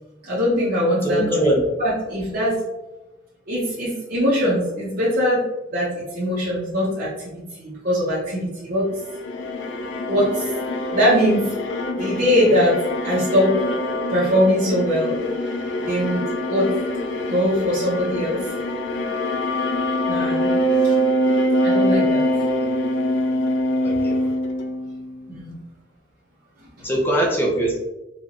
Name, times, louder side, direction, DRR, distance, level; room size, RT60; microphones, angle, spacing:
voice 1, 0.2-1.5 1.8-2.6 3.5-5.4 5.7-7.1 7.6-8.9 10.0-10.5 10.9-11.5 12.0-12.8 13.0-13.6 14.1-15.2 15.8-16.2 16.5-16.7 17.3-18.5 20.1-20.5 20.8-20.9 21.6-22.2 25.3-25.6, equal, 50° right, -9 dB, 1.0 m, -21 dB
voice 2, 1.0-1.6 23.8-24.2 26.8-27.8, right 1 dB, 10° left, -3 dB, 0.8 m, -21 dB
sound 1, 8.9-25.3, equal, 75° left, 0.5 m, -24 dB
4.1 x 2.6 x 3.0 m, 1.0 s
head